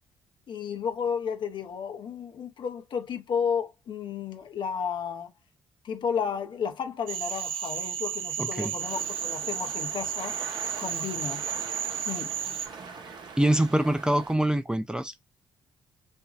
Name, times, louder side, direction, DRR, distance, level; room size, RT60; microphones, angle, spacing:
voice 1, 0.5-5.3 5.8-10.4 10.8-11.4 12.1-12.4, left 7 dB, 60° left, 0.6 m, -32 dB
Cricket / Frog, 7.1-12.7, right 8 dB, 75° right, 0.5 m, -33 dB
voice 2, 8.4-8.7 13.4-15.3, right 1 dB, 10° right, 0.4 m, -25 dB
sound 1, 8.8-14.3, right 5 dB, 55° right, 0.8 m, -43 dB
2.9 x 2.5 x 2.3 m
hypercardioid pair, 50°, 9 cm